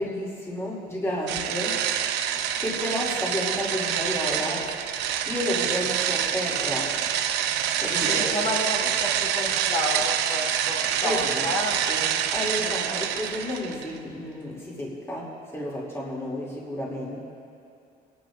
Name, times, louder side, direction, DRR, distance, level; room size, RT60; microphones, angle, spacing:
voice 1, 0.0-1.9 2.6-4.7 5.3-7.0 7.8-8.4 11.0-11.5 11.9-17.2, equal, 15° left, -4 dB, 2.5 m, -31 dB
sound 1, 1.3-13.9, right 9 dB, 90° right, 0.6 m, -26 dB
voice 2, 8.0-11.8 12.6-13.0, left 1 dB, 45° left, -4 dB, 2.5 m, -31 dB
27.5 x 10.5 x 2.5 m, 2.6 s
cardioid pair, 110°, 17 cm